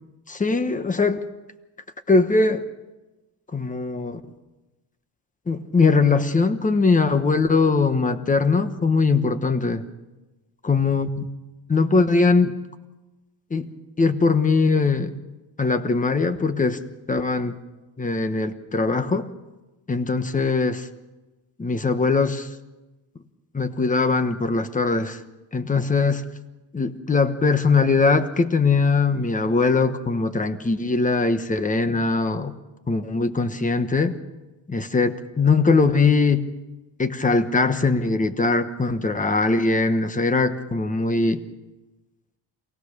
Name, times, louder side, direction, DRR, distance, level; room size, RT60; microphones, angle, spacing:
voice 1, 0.3-1.3 2.1-2.7 3.5-4.2 5.5-9.8 10.6-11.3 11.7-12.5 13.5-13.7 14.0-15.1 15.6-16.8 17.1-17.6 18.0-19.3 19.9-20.9 21.6-22.5 23.5-25.2 25.5-26.2 26.7-32.5 32.9-34.2 34.7-36.5 37.0-41.4, left 4 dB, 20° left, 10 dB, 1.1 m, -21 dB
27.0 x 18.0 x 6.7 m, 1.1 s
wide cardioid pair, 165°, 42 cm